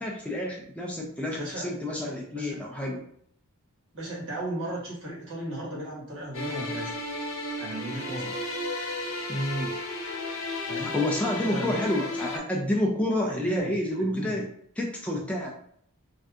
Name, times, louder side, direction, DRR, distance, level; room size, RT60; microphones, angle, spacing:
voice 1, 0.0-3.0 9.3-9.8 10.7-14.5 14.8-15.5, left 1 dB, 5° left, -1 dB, 0.3 m, -29 dB
voice 2, 1.3-2.6 3.9-6.9 7.6-8.4 10.7-10.9 11.5-11.9 13.3-14.4, right 1 dB, 60° right, -5 dB, 1.4 m, -36 dB
sound 1, 6.3-12.4, left 2 dB, 60° left, 0.8 m, -33 dB
3.3 x 2.6 x 2.4 m, 0.65 s
head